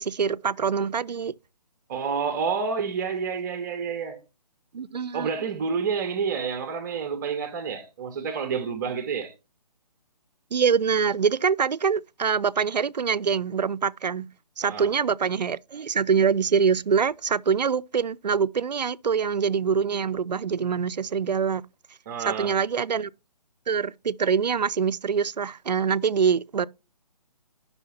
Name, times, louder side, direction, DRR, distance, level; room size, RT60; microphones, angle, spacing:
voice 1, 0.0-1.3 4.7-5.3 10.5-14.3 14.6-21.6 22.3-23.1 23.7-26.7, right 6 dB, 85° right, 0.4 m, -24 dB
voice 2, 1.9-4.2 5.1-9.3 14.6-14.9 22.1-22.6, right 6 dB, 25° right, 0.7 m, -29 dB
5.6 x 5.6 x 5.6 m
figure-of-eight pair, 140°, 21 cm